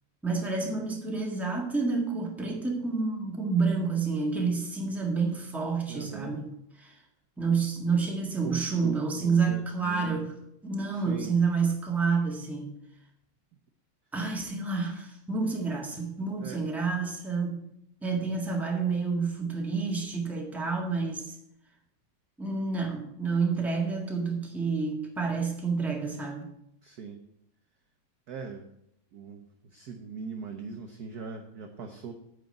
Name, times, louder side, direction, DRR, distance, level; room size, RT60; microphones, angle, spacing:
voice 1, 0.2-6.5 6.8-6.9 7.4-10.3 10.6-12.8 14.1-17.7 18.0-21.3 22.4-26.5, right 4 dB, ahead, 0 dB, 1.3 m, -29 dB
voice 2, 5.9-6.4 8.4-10.2 10.9-11.4 16.4-16.7 26.8-27.2 28.3-28.7 29.1-32.1, right 5 dB, 60° right, 5 dB, 1.0 m, -40 dB
9.0 x 4.9 x 7.7 m, 0.76 s
omnidirectional pair, 2.4 m